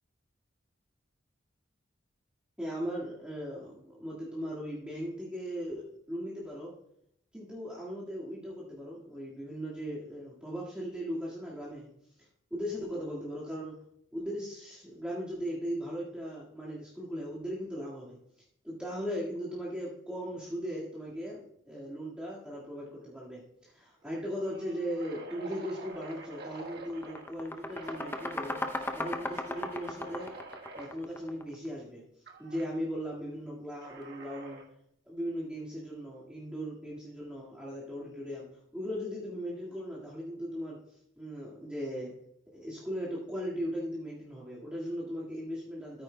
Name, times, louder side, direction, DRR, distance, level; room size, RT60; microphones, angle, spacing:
voice 1, 2.6-6.7 7.3-11.9 12.5-13.8 14.1-18.2 18.6-28.6 28.9-30.4 30.7-32.0 32.4-34.6 35.1-38.5 38.7-40.8 41.2-42.1 42.5-46.0, equal, 5° right, -8 dB, 1.9 m, -38 dB
sound 1, 22.8-23.1 23.4-23.5 24.0-27.3 27.7-30.9 32.3-32.7 33.8-34.7, right 2 dB, 60° right, 1.4 m, -48 dB
sound 2, 26.0-26.2 26.6-31.5, left 2 dB, 10° left, 0.6 m, -37 dB
14.0 x 8.9 x 2.2 m, 0.72 s
head